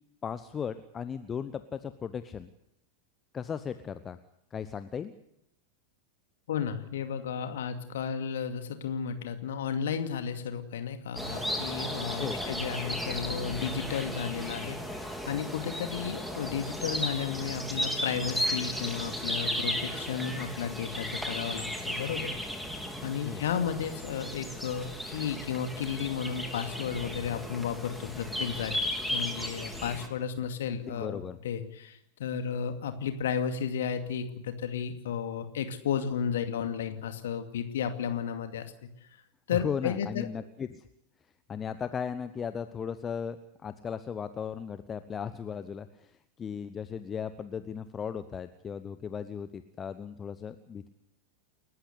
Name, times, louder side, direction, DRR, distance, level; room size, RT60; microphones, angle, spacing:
voice 1, 0.2-2.5 3.3-4.2 4.5-5.1 12.2-12.5 23.2-23.4 30.8-31.4 39.5-40.8 41.5-50.9, left 7 dB, 20° left, 12 dB, 1.0 m, -36 dB
voice 2, 6.5-22.3 23.0-28.7 29.1-31.2 31.4-38.7 39.5-40.3, left 7 dB, 60° left, 7 dB, 2.4 m, -33 dB
sound 1, 11.2-30.1, equal, ahead, 3.4 m, -35 dB
29.5 x 14.5 x 8.3 m, 0.76 s
figure-of-eight pair, 90°, 0 cm